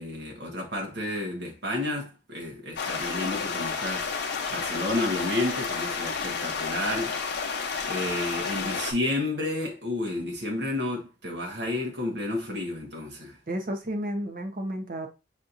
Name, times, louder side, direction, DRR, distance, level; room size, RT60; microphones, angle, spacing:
voice 1, 0.0-7.1 7.9-13.4, left 1 dB, 65° right, 1.2 m, -31 dB
sound 1, 2.8-8.9, left 5 dB, 60° left, 0.8 m, -31 dB
voice 2, 13.5-15.1, right 1 dB, 50° right, 0.9 m, -32 dB
6.4 x 2.8 x 2.5 m
head